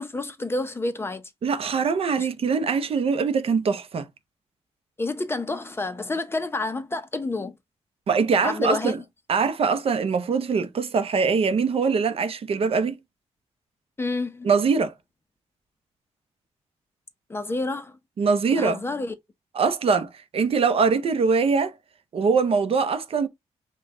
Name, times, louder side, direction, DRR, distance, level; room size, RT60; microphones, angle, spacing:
voice 1, 0.0-1.2 2.2-2.3 5.0-7.6 8.4-9.0 14.0-14.5 17.3-18.0 18.6-19.1, left 2 dB, 20° left, 0.6 m, -29 dB
voice 2, 1.4-4.1 8.1-9.0 9.3-13.0 14.4-14.9 18.2-18.8 19.5-21.8 22.1-23.3, right 5 dB, 55° right, 0.6 m, -23 dB
5.2 x 2.3 x 3.6 m
cardioid pair, 115°, 12 cm